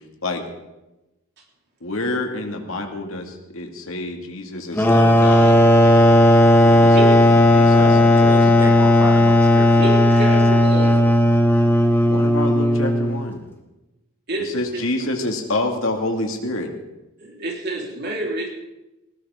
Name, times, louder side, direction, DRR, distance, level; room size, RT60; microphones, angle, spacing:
voice 1, 1.8-5.6 6.6-8.5 12.1-13.4 14.4-16.7, left 2 dB, 75° left, 3 dB, 2.1 m, -28 dB
sound 1, 4.7-13.2, left 1 dB, 10° left, 1.8 m, -14 dB
voice 2, 7.7-10.0, right 1 dB, 15° right, 7 dB, 1.0 m, -32 dB
voice 3, 9.7-11.0 14.3-14.5 14.7-14.8 17.2-18.5, right 1 dB, 50° right, -2 dB, 3.9 m, -27 dB
19.5 x 16.5 x 3.7 m, 0.97 s
head